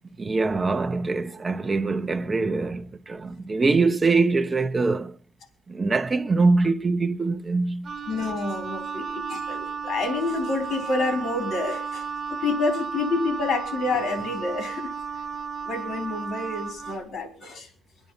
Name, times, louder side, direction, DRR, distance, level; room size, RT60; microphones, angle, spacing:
voice 1, 0.2-5.1 5.7-7.9, right 3 dB, 30° right, 0.9 m, -23 dB
Wind instrument woodwind instrument, 7.8-17.0, right 5 dB, 55° right, 1.2 m, -33 dB
voice 2, 8.1-14.9 15.6-17.7, left 3 dB, 70° left, 3.8 m, -28 dB
23.0 x 9.4 x 5.5 m
cardioid pair, 90°, 0 cm